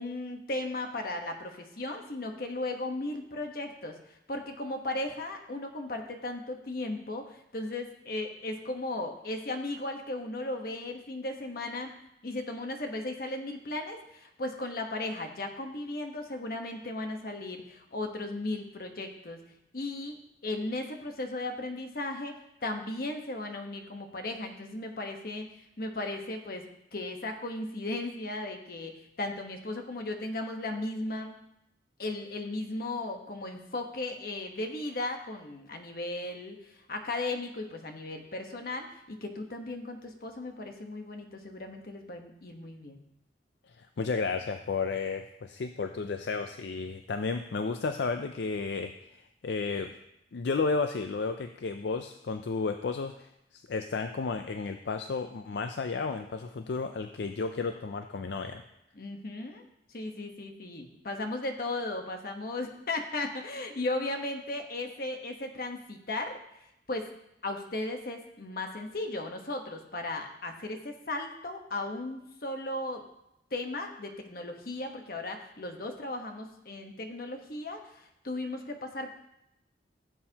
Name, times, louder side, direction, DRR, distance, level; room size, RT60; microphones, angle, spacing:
voice 1, 0.0-4.0 4.3-12.0 12.2-19.4 19.7-25.5 25.8-31.4 32.0-43.0 58.9-59.6 59.9-66.4 66.9-67.1 67.4-73.0 73.5-79.1, left 2 dB, 55° left, 4 dB, 1.2 m, -36 dB
voice 2, 43.8-49.2 49.4-49.9 50.3-58.6, left 4 dB, 70° left, 7 dB, 0.5 m, -32 dB
15.5 x 7.6 x 2.9 m, 0.82 s
head